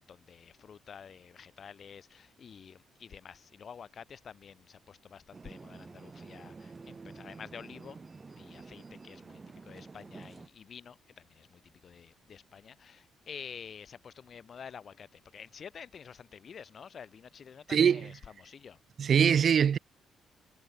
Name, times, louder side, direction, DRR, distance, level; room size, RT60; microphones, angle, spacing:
voice 1, 0.0-8.0 8.3-9.4 9.7-18.8, left 7 dB, 50° left, 7.6 m, -49 dB
sound 1, 5.3-10.5, right 4 dB, 30° right, 5.4 m, -49 dB
voice 2, 17.7-18.1 19.0-19.8, right 7 dB, 55° right, 4.1 m, -23 dB
cardioid pair, 90°, 0 cm